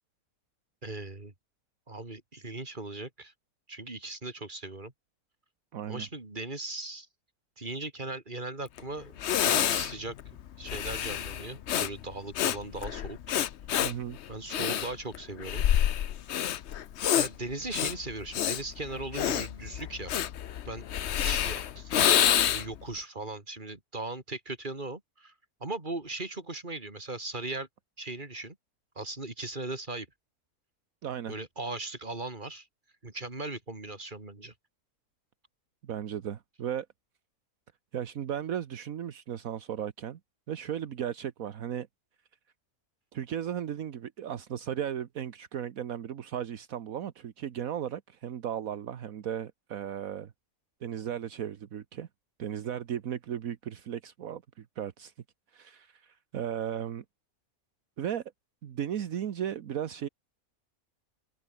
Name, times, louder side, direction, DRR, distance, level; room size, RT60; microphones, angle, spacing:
voice 1, 0.8-1.3 1.9-3.3 3.7-4.9 5.9-7.1 7.6-10.1 10.6-13.2 14.3-15.7 17.1-20.1 20.7-20.9 21.1-25.3 25.6-27.7 28.0-28.6 29.0-30.1 31.3-32.7 33.0-34.5, right 2 dB, 30° right, 3.5 m, -38 dB
voice 2, 5.7-6.1 13.8-14.2 31.0-31.3 35.8-36.9 37.9-40.2 40.5-41.9 43.1-50.3 50.8-52.1 52.4-55.1 55.5-57.0 58.0-58.2 58.6-60.1, right 9 dB, 70° right, 1.4 m, -35 dB
Breathing, 8.8-8.9 9.2-22.8, left 10 dB, 55° left, 0.9 m, -28 dB
omnidirectional pair, 1.5 m